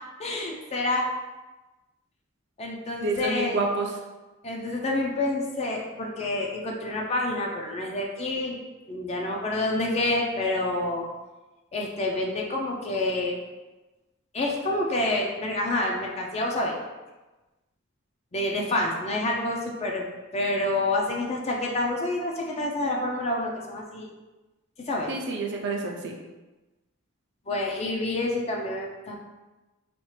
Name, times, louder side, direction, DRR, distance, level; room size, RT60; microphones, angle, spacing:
voice 1, 0.2-1.0 2.6-3.6 4.4-8.6 8.9-11.1 11.7-13.4 14.3-16.8 18.3-20.0 20.3-24.1 24.8-25.1 27.5-29.1, left 2 dB, 30° left, -1 dB, 0.5 m, -28 dB
voice 2, 3.0-4.0 25.1-26.2, right 2 dB, 55° right, 1 dB, 0.5 m, -28 dB
4.2 x 2.4 x 3.1 m, 1.1 s
head